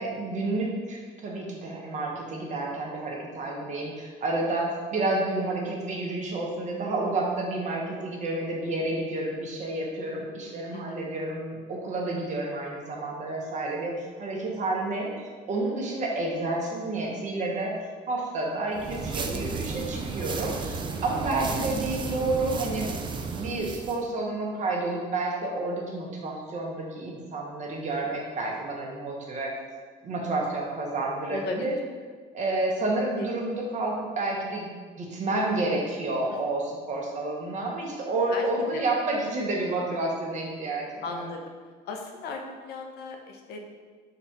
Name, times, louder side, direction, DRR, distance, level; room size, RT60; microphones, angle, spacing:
voice 1, 0.0-22.9 23.3-29.6 30.0-31.7 32.3-34.7 35.0-41.2, right 2 dB, 45° right, -1 dB, 0.9 m, -30 dB
voice 2, 10.7-11.0 20.9-21.2 21.5-21.7 31.3-31.8 33.1-33.3 38.3-38.5 38.7-38.8 41.0-41.6 41.8-43.6, left 4 dB, 75° left, 3 dB, 0.6 m, -37 dB
sound 1, 18.7-24.0, right 4 dB, 30° right, 0.3 m, -33 dB
4.0 x 2.4 x 4.0 m, 1.5 s
cardioid pair, 110°, 17 cm